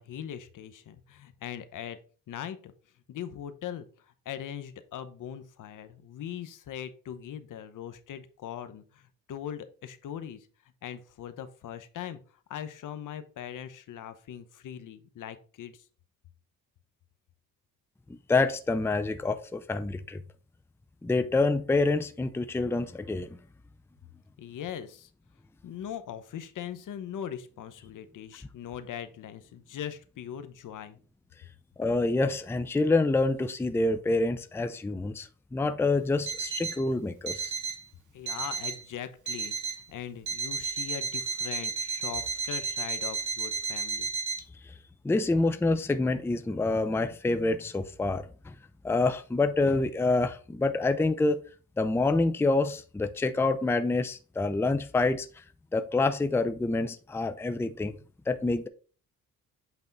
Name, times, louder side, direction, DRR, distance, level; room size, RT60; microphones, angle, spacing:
voice 1, 0.0-2.0 2.3-2.7 3.1-3.9 4.2-10.5 10.8-12.2 12.5-15.9 24.4-25.1 25.6-31.0 38.1-39.5 39.9-44.1, left 9 dB, 70° left, 0.9 m, -40 dB
voice 2, 18.3-20.2 21.0-23.3 31.8-37.5 45.0-48.5 48.8-51.4 51.8-55.3 55.7-58.0 58.3-58.7, left 3 dB, 5° left, 0.5 m, -27 dB
Alarm, 36.3-36.8 37.3-37.8 38.3-38.8 39.3-39.8 40.3-44.4, right 4 dB, 60° right, 1.4 m, -33 dB
8.1 x 3.5 x 4.0 m
cardioid pair, 90°, 33 cm